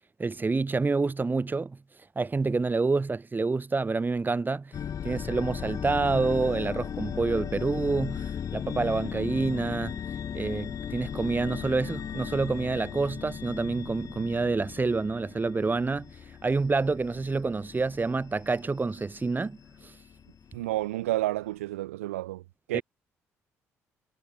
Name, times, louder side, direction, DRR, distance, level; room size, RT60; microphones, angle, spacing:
voice 1, 0.2-1.8 2.2-4.7 5.0-10.0 10.3-16.1 16.4-19.6 22.7-22.8, right 3 dB, 25° right, 2.6 m, -28 dB
sound 1, 4.7-20.8, left 8 dB, 50° left, 4.3 m, -37 dB
voice 2, 20.5-22.4 22.7-22.8, right 16 dB, 80° right, 2.3 m, -30 dB
figure-of-eight pair, 45°, 7 cm